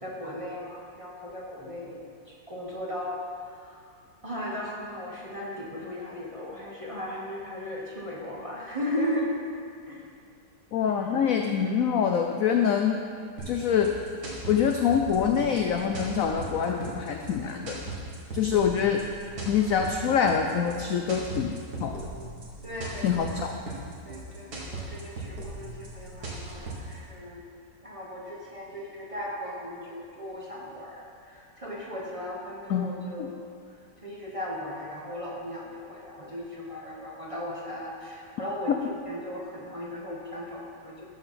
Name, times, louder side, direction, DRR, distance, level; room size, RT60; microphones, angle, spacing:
voice 1, 0.0-3.9 4.2-9.3 9.9-10.0 22.6-23.2 24.0-27.4 27.8-33.4 34.0-38.7 39.0-41.1, left 1 dB, 20° right, -4 dB, 1.1 m, -37 dB
voice 2, 10.7-13.0 13.5-13.9 14.5-17.8 18.3-19.0 19.5-21.5 21.8-21.9 23.0-23.5 32.7-32.9 33.2-33.3 38.7-38.8, left 7 dB, 70° left, 3 dB, 0.8 m, -25 dB
sound 1, 13.4-27.0, right 3 dB, 55° right, 2.1 m, -38 dB
13.5 x 4.8 x 5.7 m, 2.3 s
omnidirectional pair, 2.0 m